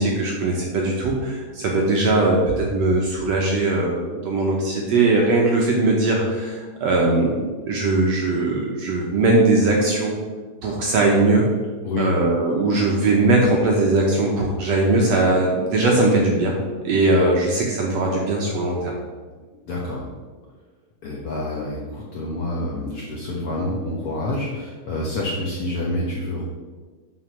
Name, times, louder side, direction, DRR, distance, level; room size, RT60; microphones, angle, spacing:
voice 1, 0.0-10.1 10.6-11.5 12.0-16.6 16.8-18.9, right 2 dB, 65° right, -1 dB, 1.7 m, -20 dB
voice 2, 19.7-20.0 21.0-26.4, left 1 dB, 60° left, -4 dB, 1.5 m, -27 dB
8.0 x 5.0 x 6.0 m, 1.4 s
omnidirectional pair, 3.9 m